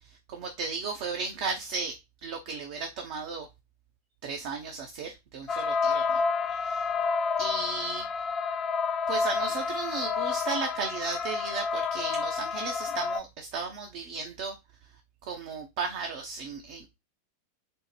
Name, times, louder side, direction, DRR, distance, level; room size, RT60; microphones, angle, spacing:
voice 1, 0.3-2.0 2.2-3.5 4.2-6.2 6.5-6.9 7.4-8.1 9.1-14.5 15.3-17.0, right 4 dB, 50° right, 0.6 m, -35 dB
sound 1, 5.5-13.2, left 5 dB, 25° left, 0.3 m, -29 dB
4.2 x 2.1 x 3.1 m
figure-of-eight pair, 90°, 0 cm